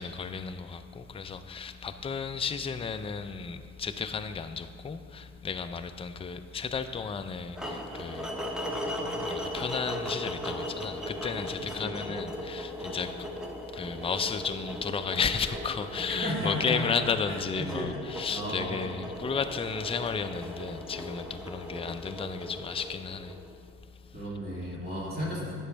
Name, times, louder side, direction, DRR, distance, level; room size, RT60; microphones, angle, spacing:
voice 1, 0.0-23.4, left 6 dB, 20° left, 0.4 m, -33 dB
sound 1, 7.6-23.7, equal, ahead, 0.9 m, -38 dB
voice 2, 11.6-12.1 16.2-16.9 17.3-17.9 18.3-18.9 21.4-21.5 24.1-25.5, equal, 30° right, 2.2 m, -34 dB
9.8 x 7.1 x 3.3 m
cardioid pair, 90°, 30 cm